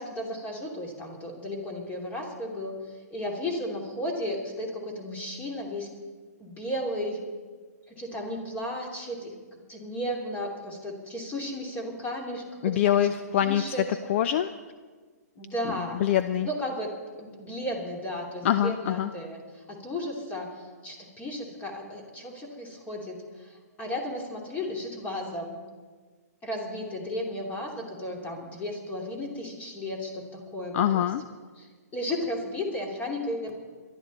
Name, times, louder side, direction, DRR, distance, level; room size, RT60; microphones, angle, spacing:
voice 1, 0.0-2.8 3.1-5.9 6.4-7.2 7.9-9.3 9.7-13.1 13.4-13.9 15.4-16.0 16.4-16.9 17.2-25.6 26.4-31.1 31.6-33.6, left 1 dB, 15° left, 1 dB, 2.9 m, -34 dB
voice 2, 12.6-13.6 14.1-14.5 16.0-16.5 18.4-19.1 30.7-31.2, left 10 dB, 45° left, 11 dB, 0.6 m, -24 dB
22.5 x 12.0 x 4.2 m, 1.5 s
hypercardioid pair, 145°, 9 cm